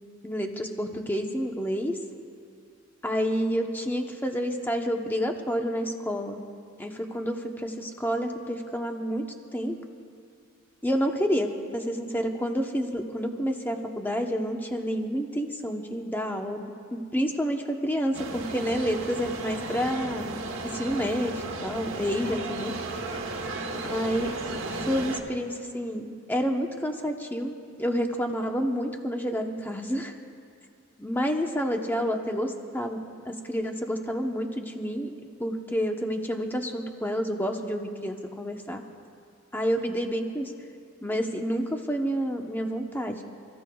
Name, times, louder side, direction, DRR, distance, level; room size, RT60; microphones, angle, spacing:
voice 1, 0.2-2.0 3.0-6.4 6.8-9.8 10.8-16.6 16.9-20.3 20.6-21.3 21.6-22.7 23.8-24.3 24.7-30.1 31.0-33.0 33.2-38.8 39.5-40.5 41.0-43.2, equal, 10° left, 3 dB, 0.9 m, -29 dB
sound 1, 18.1-25.2, right 2 dB, 60° right, 1.2 m, -34 dB
29.5 x 15.0 x 2.3 m, 2.3 s
head